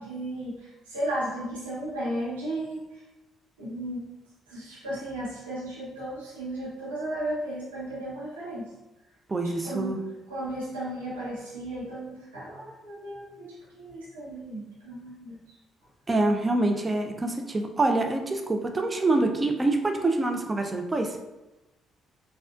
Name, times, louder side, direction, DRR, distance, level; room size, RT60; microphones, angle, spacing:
voice 1, 0.0-3.0 3.6-4.1 4.5-8.7 9.6-10.0 10.3-15.4, right 1 dB, 90° right, -8 dB, 1.1 m, -35 dB
voice 2, 9.3-10.0 16.1-21.2, right 2 dB, 30° right, 4 dB, 0.5 m, -25 dB
4.2 x 2.4 x 2.4 m, 0.98 s
hypercardioid pair, 45°, 0 cm